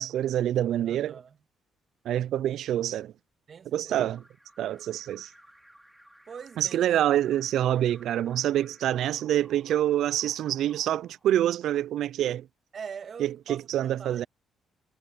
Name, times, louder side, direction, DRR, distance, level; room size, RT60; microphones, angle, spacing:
voice 1, 0.0-1.2 2.1-3.1 3.7-4.2 4.6-5.3 6.6-12.5 13.2-14.3, right 12 dB, 75° right, 0.3 m, -26 dB
voice 2, 0.9-1.4 3.5-4.2 6.3-6.9 12.7-14.3, right 6 dB, 50° right, 1.8 m, -43 dB
Alarm, 3.9-11.8, equal, 5° right, 3.9 m, -57 dB
cardioid pair, 90°, 0 cm